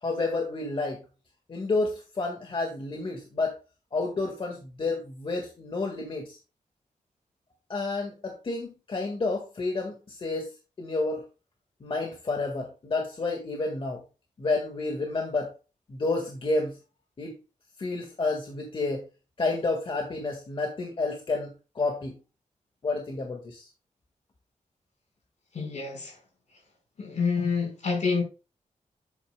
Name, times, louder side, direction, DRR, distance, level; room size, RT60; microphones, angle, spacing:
voice 1, 0.0-1.0 1.5-3.6 3.9-6.4 7.7-10.5 10.8-11.2 11.8-14.0 14.4-15.5 15.9-16.8 17.2-17.3 17.8-19.0 19.4-22.1 22.8-23.7, left 3 dB, 40° left, 1.7 m, -30 dB
voice 2, 25.5-26.2 27.0-28.2, left 5 dB, 65° left, 4.5 m, -27 dB
11.0 x 8.3 x 2.2 m
wide cardioid pair, 150°, 13 cm